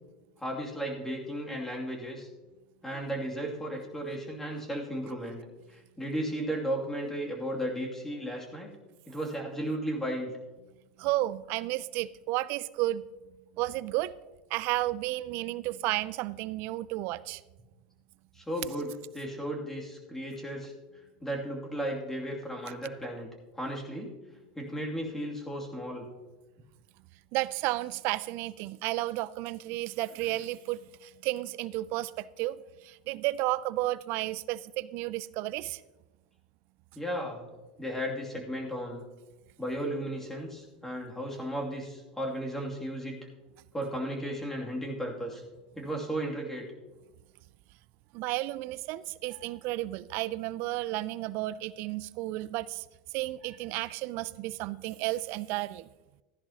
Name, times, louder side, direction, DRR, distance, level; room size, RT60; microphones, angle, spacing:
voice 1, 0.4-2.3 2.8-5.4 5.7-8.7 9.1-10.3 18.3-18.9 19.1-20.7 21.2-23.3 23.6-24.1 24.6-26.1 36.9-37.5 37.8-39.0 39.6-43.2 43.7-45.4 45.8-46.6, right 1 dB, 10° left, 2.5 m, -35 dB
voice 2, 11.0-13.0 13.6-14.1 14.5-17.4 27.3-35.8 48.1-52.8 53.1-55.9, right 17 dB, 55° right, 0.4 m, -32 dB
14.5 x 10.5 x 2.9 m
hypercardioid pair, 95°, 4 cm